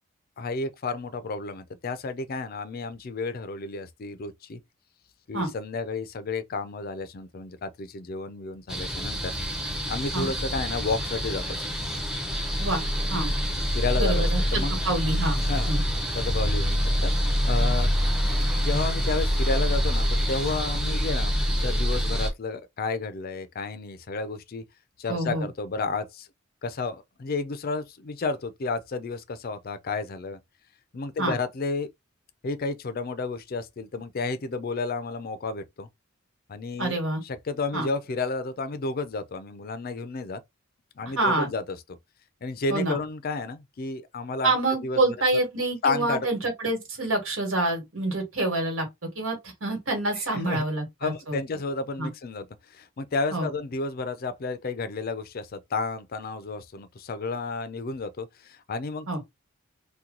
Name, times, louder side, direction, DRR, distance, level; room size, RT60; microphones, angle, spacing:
voice 1, 0.4-4.6 5.3-9.3 9.6-11.6 13.7-14.2 14.5-14.8 15.1-15.8 16.1-18.0 18.3-24.6 25.0-26.3 26.6-30.4 30.9-31.9 32.4-35.9 36.5-40.4 41.0-42.0 42.4-44.6 44.8-45.0 45.8-46.3 50.2-50.6 51.0-59.1, left 3 dB, 45° left, 0.4 m, -32 dB
sound 1, 8.7-22.3, equal, ahead, 0.7 m, -26 dB
voice 2, 14.0-15.4 15.7-15.8 25.1-25.5 31.2-31.3 36.8-37.2 37.7-37.9 41.2-41.5 42.7-43.0 44.4-48.9 49.1-51.4 52.0-52.1 53.3-53.5 59.1-59.2, right 2 dB, 80° right, 1.5 m, -27 dB
2.9 x 2.2 x 3.7 m
head